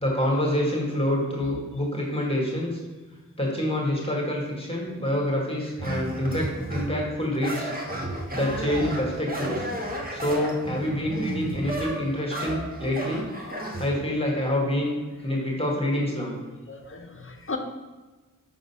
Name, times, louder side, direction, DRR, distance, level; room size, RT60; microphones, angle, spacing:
voice 1, 0.0-2.8 3.4-7.7 8.3-9.7 10.1-13.3 13.8-15.0 15.2-16.3, left 1 dB, 15° left, -2 dB, 1.6 m, -27 dB
sound 1, 5.8-7.0 7.4-13.9, right 1 dB, 25° right, 1.3 m, -33 dB
voice 2, 16.7-17.6, left 4 dB, 40° left, 4 dB, 0.7 m, -36 dB
5.5 x 3.8 x 5.5 m, 1.2 s
wide cardioid pair, 50°, 32 cm